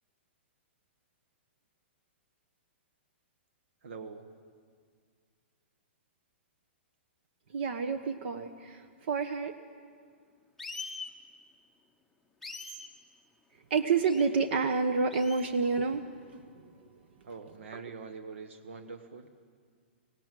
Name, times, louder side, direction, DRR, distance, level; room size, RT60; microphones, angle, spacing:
voice 1, 3.8-4.3 17.2-19.4, right 4 dB, 80° right, 7 dB, 1.3 m, -44 dB
voice 2, 7.5-9.5 13.7-16.4 17.7-17.8, right 4 dB, 60° right, 9 dB, 1.1 m, -29 dB
sound 1, 10.6-11.1 12.4-12.9 14.0-14.3 15.1-15.5, left 3 dB, 5° left, 0.8 m, -42 dB
18.5 x 17.5 x 9.1 m, 2.1 s
hypercardioid pair, 155°, 7 cm